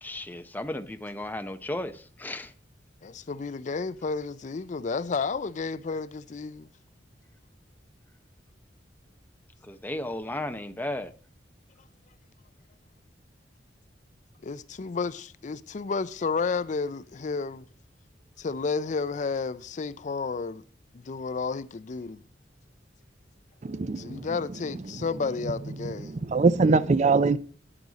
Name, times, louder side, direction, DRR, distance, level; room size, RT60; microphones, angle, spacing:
voice 1, 0.0-2.5 9.7-11.1, left 1 dB, 10° left, 0.7 m, -34 dB
voice 2, 3.0-6.7 14.4-17.6 18.4-20.6 20.9-22.2 24.0-26.1, left 4 dB, 40° left, 0.4 m, -31 dB
voice 3, 23.6-24.3 25.8-27.4, right 4 dB, 40° right, 0.4 m, -23 dB
11.0 x 9.7 x 4.0 m
head